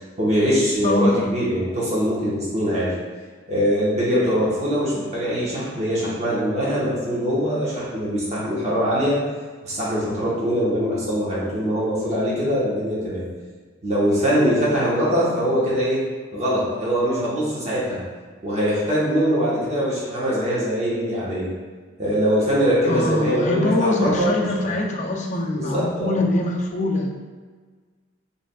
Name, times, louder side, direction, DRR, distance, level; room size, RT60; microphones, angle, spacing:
voice 1, 0.2-2.9 3.5-9.2 9.6-13.3 13.8-16.0 16.3-18.0 18.4-21.5 22.0-24.7 25.5-26.2, equal, 35° right, -7 dB, 1.2 m, -22 dB
voice 2, 22.9-27.1, left 2 dB, 40° left, 0 dB, 0.5 m, -23 dB
4.9 x 3.5 x 2.3 m, 1.5 s
head